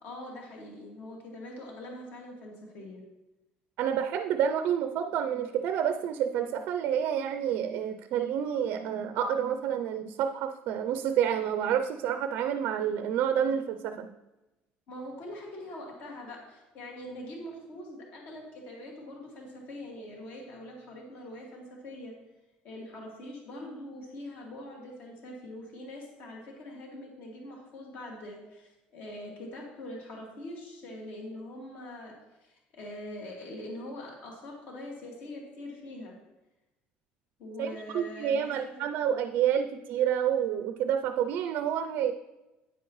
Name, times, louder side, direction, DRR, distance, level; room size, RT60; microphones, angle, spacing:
voice 1, 0.0-3.0 14.9-22.1 22.6-32.1 32.4-36.2 37.4-38.9, left 1 dB, 55° left, -1 dB, 2.2 m, -43 dB
voice 2, 3.8-14.1 37.6-37.7 37.9-42.1, right 9 dB, 60° right, 8 dB, 0.5 m, -29 dB
9.6 x 9.2 x 3.1 m, 1.0 s
cardioid pair, 170°, 4 cm